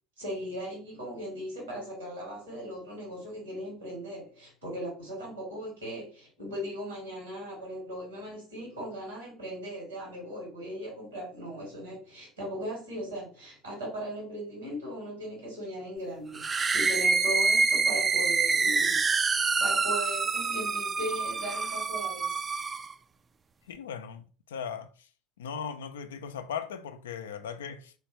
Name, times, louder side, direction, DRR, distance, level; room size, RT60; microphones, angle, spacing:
voice 1, 0.2-19.0 19.6-22.4, equal, 85° right, 1.8 m, -38 dB
sound 1, 16.3-22.9, right 4 dB, 30° right, 0.3 m, -26 dB
voice 2, 23.7-25.1 25.4-27.9, left 7 dB, 75° left, 0.4 m, -38 dB
3.3 x 3.1 x 3.0 m
figure-of-eight pair, 65°, 0 cm